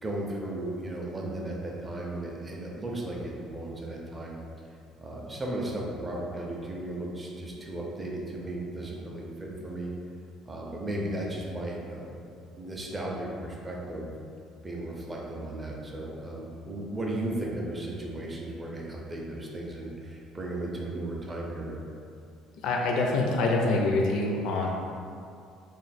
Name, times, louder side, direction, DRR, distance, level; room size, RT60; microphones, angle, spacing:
voice 1, 0.0-4.4 5.0-9.9 10.5-12.1 12.6-14.1 14.6-21.8, right 1 dB, 15° right, -2 dB, 0.4 m, -35 dB
voice 2, 22.6-24.7, left 2 dB, 60° left, 0 dB, 0.4 m, -25 dB
3.0 x 2.4 x 4.1 m, 2.4 s
cardioid pair, 170°, 0 cm